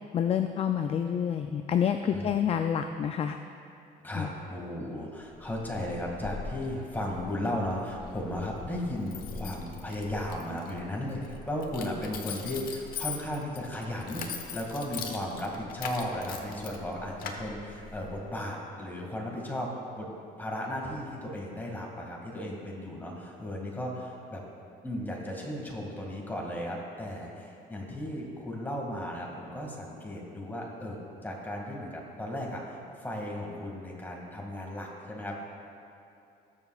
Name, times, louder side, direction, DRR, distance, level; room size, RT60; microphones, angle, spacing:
voice 1, 0.1-3.4 4.1-4.3, left 8 dB, 35° left, 7 dB, 0.4 m, -28 dB
voice 2, 4.0-19.7 20.0-20.1 20.4-24.4 24.8-35.4, left 1 dB, 10° left, -2 dB, 2.2 m, -35 dB
Keys jangling, 5.3-18.3, left 6 dB, 60° left, 1.1 m, -42 dB
20.0 x 7.0 x 2.4 m, 2.7 s
cardioid pair, 110°, 17 cm